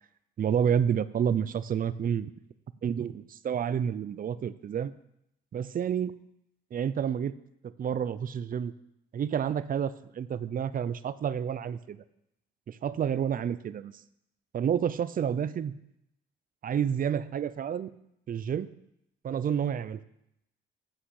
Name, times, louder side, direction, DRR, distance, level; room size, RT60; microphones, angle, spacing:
voice 1, 0.4-2.3 2.8-4.9 5.5-6.2 6.7-7.4 7.6-8.7 9.1-12.0 12.7-13.9 14.5-15.7 16.6-17.9 18.3-18.7 19.2-20.0, right 8 dB, 45° right, 15 dB, 0.6 m, -29 dB
8.7 x 7.5 x 6.5 m, 0.79 s
cardioid pair, 90°, 20 cm